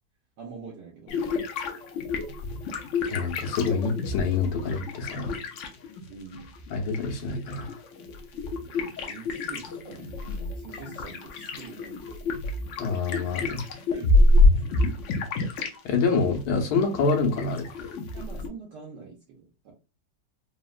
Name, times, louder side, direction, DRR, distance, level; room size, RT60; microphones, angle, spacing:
voice 1, 0.4-1.1 6.1-6.5 8.7-12.4 13.9-14.2 14.5-14.6 18.1-19.7, right 5 dB, 85° right, 1.4 m, -45 dB
sound 1, 1.1-6.1 6.3-15.8 16.0-18.5, left 2 dB, 70° left, 0.7 m, -27 dB
voice 2, 3.1-5.3 6.7-7.7 12.8-13.6 15.8-17.7, left 4 dB, 85° left, 1.3 m, -26 dB
3.6 x 2.1 x 2.4 m
omnidirectional pair, 1.8 m